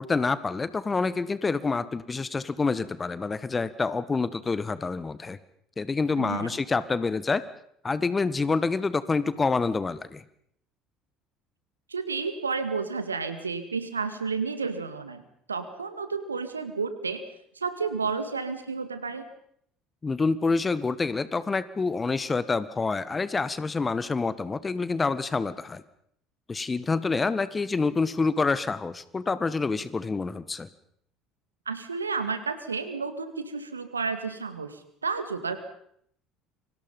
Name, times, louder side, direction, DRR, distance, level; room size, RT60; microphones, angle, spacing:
voice 1, 0.0-5.4 5.8-7.4 7.8-10.2 20.0-25.8 26.5-30.7, left 4 dB, 25° left, 16 dB, 1.7 m, -27 dB
voice 2, 6.2-6.6 11.9-15.2 15.5-17.2 17.6-19.2 31.7-35.6, right 4 dB, 85° right, 10 dB, 2.1 m, -31 dB
30.0 x 24.5 x 5.5 m, 0.67 s
figure-of-eight pair, 60°, 0 cm